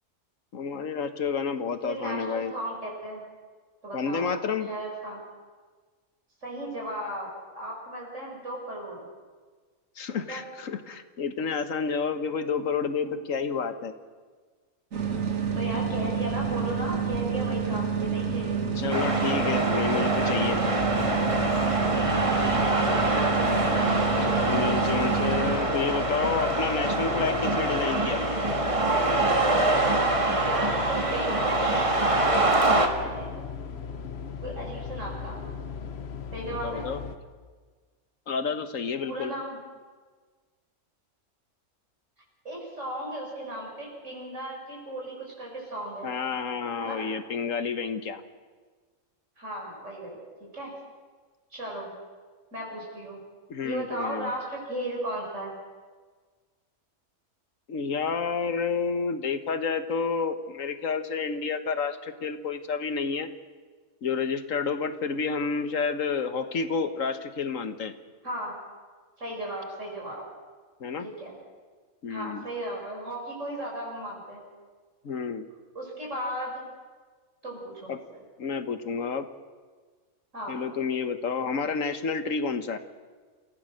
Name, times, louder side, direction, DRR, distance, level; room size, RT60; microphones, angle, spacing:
voice 1, 0.5-2.5 3.9-4.7 10.0-13.9 18.8-20.6 24.4-28.3 36.6-37.0 38.3-39.4 46.0-48.2 53.5-54.3 57.7-63.3 64.0-67.9 70.8-71.1 72.0-72.4 75.0-75.5 77.9-78.0 78.4-79.3 80.5-82.8, left 5 dB, 85° left, 10 dB, 1.6 m, -30 dB
voice 2, 1.8-3.2 3.8-4.3 4.6-5.2 6.4-7.3 7.6-9.1 10.3-10.4 13.0-13.2 15.5-18.7 22.1-23.3 24.1-24.7 30.4-33.3 34.4-35.4 36.3-36.9 39.0-39.6 42.4-46.1 46.8-47.0 49.4-50.2 50.5-50.7 51.5-52.0 52.5-53.2 53.6-55.6 68.2-68.5 69.2-70.2 71.0-71.4 72.1-74.4 75.8-76.6 77.4-78.2 80.3-80.6, right 1 dB, 70° right, -3 dB, 5.5 m, -36 dB
sound 1, 14.9-25.6, right 6 dB, 85° right, 2.2 m, -28 dB
sound 2, 18.9-32.9, right 2 dB, 25° right, 1.7 m, -25 dB
room tone office hallway small bassy wider, 20.8-37.2, left 6 dB, 55° left, 1.3 m, -37 dB
28.0 x 16.5 x 6.4 m, 1.5 s
omnidirectional pair, 1.3 m